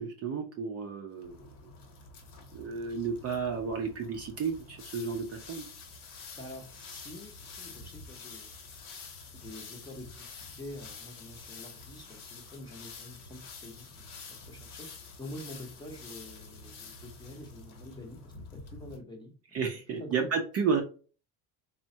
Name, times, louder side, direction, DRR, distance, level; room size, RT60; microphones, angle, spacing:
voice 1, 0.0-1.4 2.5-5.6 19.5-20.8, right 5 dB, 35° right, 3 dB, 0.4 m, -32 dB
sound 1, 1.2-19.0, left 4 dB, 60° left, 1.0 m, -48 dB
voice 2, 6.3-8.5 9.3-19.3 20.0-20.3, left 1 dB, 10° left, 1 dB, 0.6 m, -47 dB
3.3 x 2.1 x 2.6 m, 0.37 s
cardioid pair, 110°, 45 cm